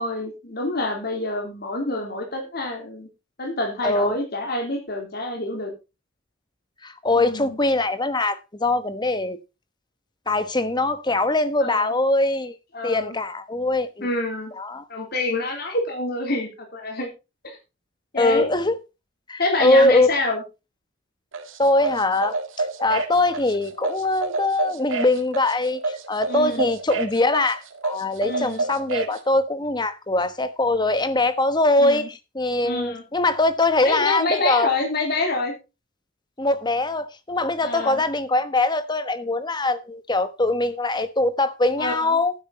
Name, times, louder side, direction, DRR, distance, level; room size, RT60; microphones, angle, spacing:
voice 1, 0.0-3.1 3.4-5.7 7.1-7.6 11.6-11.9 12.7-13.2 14.0-14.5 14.9-17.1 17.4-17.6 18.1-18.5 19.4-20.4 26.3-26.7 28.2-28.6 31.8-32.1 32.6-33.0 33.8-35.5 37.6-38.0 41.8-42.2, left 2 dB, 50° left, 3.7 m, -27 dB
voice 2, 3.8-4.2 6.8-9.4 10.3-12.5 12.8-14.1 14.6-14.8 18.2-18.7 19.3-20.1 21.6-34.7 36.4-42.3, left 2 dB, 20° left, 1.1 m, -22 dB
sound 1, 21.3-29.2, right 3 dB, 80° right, 2.0 m, -28 dB
12.0 x 9.8 x 4.2 m
head